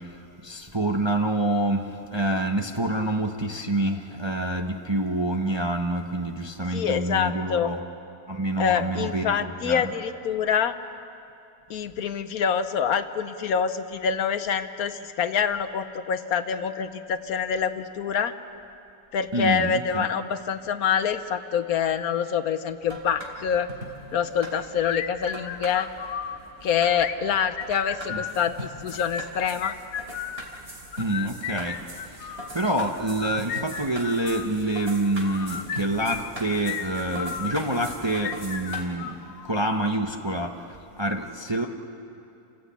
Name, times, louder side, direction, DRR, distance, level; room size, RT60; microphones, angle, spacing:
voice 1, 0.0-7.8 8.3-9.9 19.3-20.1 28.1-28.2 31.0-31.8 32.1-41.7, right 1 dB, 20° right, 3 dB, 0.8 m, -27 dB
voice 2, 6.7-7.7 8.6-10.8 11.7-18.3 19.1-23.7 24.1-25.9 26.6-29.8, left 7 dB, 70° left, 11 dB, 1.2 m, -26 dB
sound 1, 22.8-38.8, equal, 40° right, 3.2 m, -41 dB
sound 2, 24.8-26.4 26.9-28.4 28.9-30.4 30.9-32.5 33.1-34.5 35.2-37.6 38.1-39.6, left 8 dB, 90° left, 1.4 m, -34 dB
29.0 x 15.5 x 8.3 m, 2.7 s
omnidirectional pair, 1.7 m